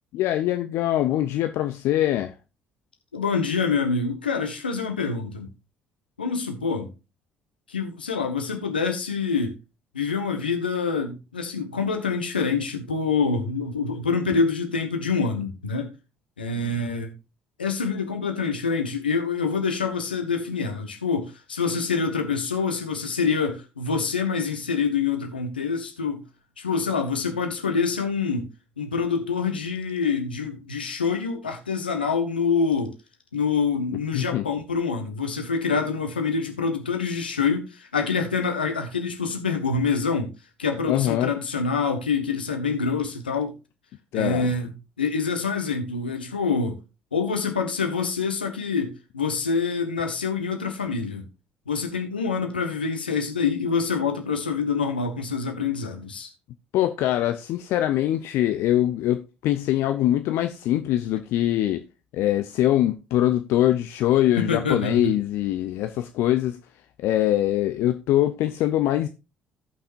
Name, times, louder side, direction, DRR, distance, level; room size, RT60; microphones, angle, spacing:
voice 1, 0.1-2.3 16.6-16.7 34.1-34.5 40.9-41.3 44.1-44.5 56.7-61.8 62.1-66.6 67.0-69.1, left 13 dB, 60° left, 0.6 m, -23 dB
voice 2, 3.1-5.5 6.2-6.9 7.7-9.5 9.9-15.9 16.4-17.1 17.6-26.2 26.6-28.5 28.8-33.0 33.3-40.3 40.6-43.6 44.1-44.7 45.0-46.8 47.1-51.3 51.7-56.3 64.4-65.2, left 5 dB, 85° left, 1.2 m, -26 dB
17.0 x 5.8 x 2.5 m
figure-of-eight pair, 50°, 5 cm